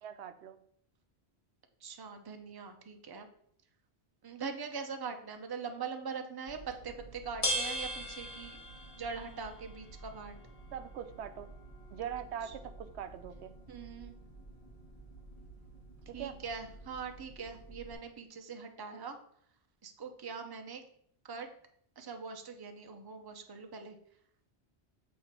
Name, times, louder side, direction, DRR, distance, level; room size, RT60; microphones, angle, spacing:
voice 1, 0.0-0.6 10.7-11.5 11.9-13.6 16.1-16.4, right 9 dB, 80° right, 10 dB, 0.9 m, -42 dB
voice 2, 1.8-3.3 4.2-8.6 9.0-10.4 13.7-14.2 16.1-19.2 19.8-20.8 21.2-21.5 22.0-24.0, right 5 dB, 25° right, 5 dB, 0.6 m, -42 dB
sound 1, 6.5-17.9, equal, 35° left, 1.4 m, -43 dB
7.7 x 3.2 x 5.7 m, 0.67 s
omnidirectional pair, 1.1 m